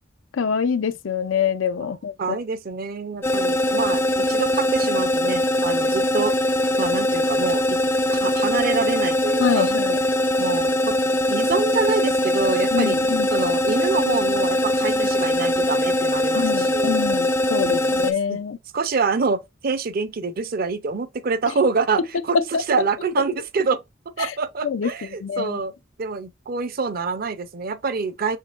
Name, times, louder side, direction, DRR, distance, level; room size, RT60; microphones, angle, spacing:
voice 1, 0.4-2.1 9.4-10.0 12.7-13.3 16.3-18.6 24.6-24.9 25.2-25.6, left 7 dB, 85° left, 0.5 m, -25 dB
voice 2, 2.2-6.3 6.8-7.8 8.1-9.7 10.4-11.0 11.3-13.0 13.3-17.0 17.6-18.0 18.3-18.4 18.7-23.8 24.2-25.7 26.0-28.4, right 4 dB, 50° right, 0.5 m, -26 dB
sound 1, 3.2-18.1, left 1 dB, 15° left, 0.4 m, -22 dB
6.5 x 2.8 x 2.4 m
head